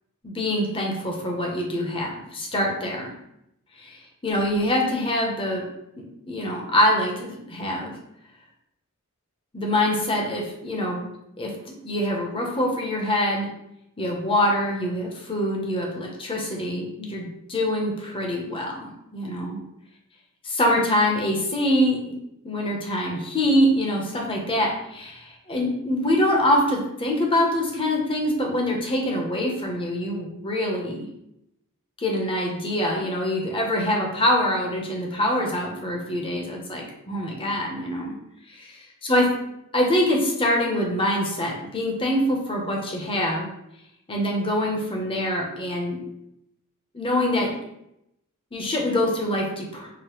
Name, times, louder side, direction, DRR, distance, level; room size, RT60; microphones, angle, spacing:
voice 1, 0.2-3.0 3.8-4.0 4.2-5.7 6.0-7.9 9.5-11.1 11.4-11.5 11.8-13.5 14.0-19.6 20.5-22.2 22.4-31.1 32.0-38.1 38.5-38.7 39.0-39.3 39.7-43.5 44.1-46.0 46.9-47.5 48.5-49.9, left 1 dB, 25° left, 0 dB, 0.7 m, -24 dB
4.9 x 2.0 x 3.0 m, 0.82 s
head